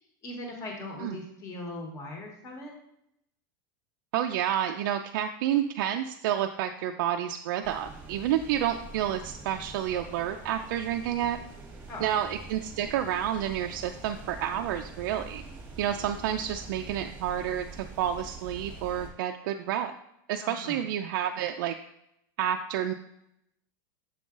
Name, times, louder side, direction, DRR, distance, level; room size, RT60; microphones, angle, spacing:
voice 1, 0.2-2.7 11.9-12.1 20.4-20.8, left 2 dB, 25° left, 1 dB, 1.2 m, -39 dB
voice 2, 4.1-11.4 12.0-15.4 15.8-19.9 20.3-21.7 22.4-22.9, right 10 dB, 65° right, 4 dB, 0.4 m, -29 dB
sound 1, 7.6-19.1, right 3 dB, 15° right, 1.1 m, -45 dB
6.9 x 3.8 x 3.7 m, 0.79 s
supercardioid pair, 160°, 11 cm